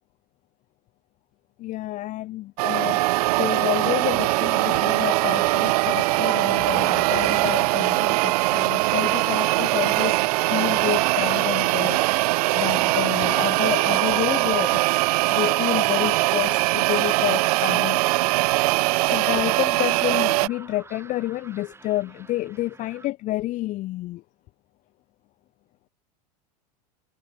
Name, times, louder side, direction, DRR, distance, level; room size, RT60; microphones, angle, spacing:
voice 1, 1.6-3.0 3.3-10.2 10.5-14.8 15.3-18.1 18.4-18.6 19.1-24.2, left 16 dB, 40° left, 0.5 m, -29 dB
sound 1, 2.6-20.5, right 22 dB, 70° right, 0.5 m, -21 dB
sound 2, 3.4-23.1, right 3 dB, 10° right, 5.3 m, -49 dB
hypercardioid pair, 105°, 21 cm